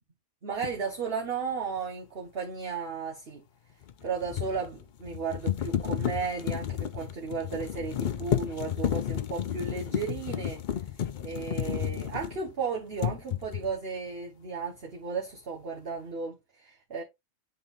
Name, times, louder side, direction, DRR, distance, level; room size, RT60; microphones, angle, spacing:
voice 1, 0.4-3.4 4.0-10.6 11.2-17.0, right 5 dB, 45° right, 1.5 m, -34 dB
sound 1, 0.6-0.8 3.8-12.6 13.0-13.8, left 10 dB, 70° left, 0.4 m, -32 dB
10.0 x 3.8 x 2.5 m
omnidirectional pair, 1.5 m